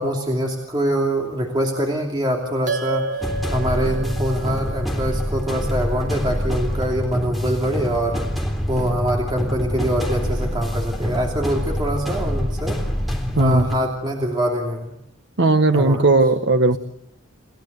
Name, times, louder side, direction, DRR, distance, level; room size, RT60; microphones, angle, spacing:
voice 1, 0.0-3.1 3.5-8.2 8.7-12.8 13.4-14.9 15.7-16.0, equal, 25° right, 2.9 m, -24 dB
sound 1, 2.7-7.4, right 3 dB, 40° right, 3.0 m, -33 dB
sound 2, 3.2-13.8, equal, ahead, 3.5 m, -26 dB
voice 2, 13.3-13.7 15.4-16.8, right 2 dB, 60° right, 1.3 m, -17 dB
29.0 x 16.5 x 8.1 m
head